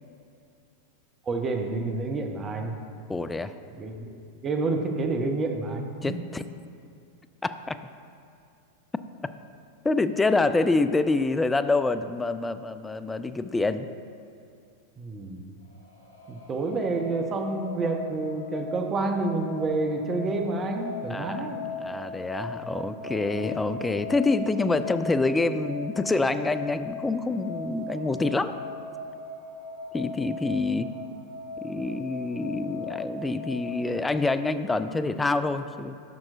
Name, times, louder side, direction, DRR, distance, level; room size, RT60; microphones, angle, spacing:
voice 1, 1.3-2.8 3.7-4.2 4.4-6.1 15.0-15.6 16.3-21.7, right 3 dB, 25° right, 4 dB, 0.8 m, -29 dB
voice 2, 3.1-3.5 6.0-6.4 7.4-7.8 9.8-13.9 21.1-21.5 21.8-28.6 29.9-30.9 31.6-35.9, left 3 dB, 10° left, 11 dB, 0.3 m, -26 dB
sound 1, 15.6-33.8, left 2 dB, 80° left, 1.6 m, -39 dB
14.0 x 5.9 x 2.5 m, 2.5 s
figure-of-eight pair, 90°, 0 cm